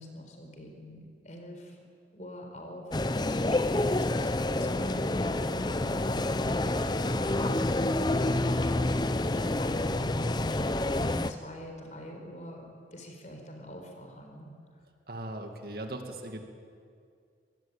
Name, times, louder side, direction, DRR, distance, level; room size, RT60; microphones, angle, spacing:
voice 1, 0.0-1.8 2.1-14.5, equal, 40° left, 3 dB, 4.4 m, -44 dB
sound 1, 2.9-11.3, left 2 dB, 25° left, 0.6 m, -28 dB
voice 2, 15.1-16.5, right 1 dB, 55° right, 4 dB, 2.3 m, -39 dB
23.5 x 19.5 x 8.9 m, 2.3 s
head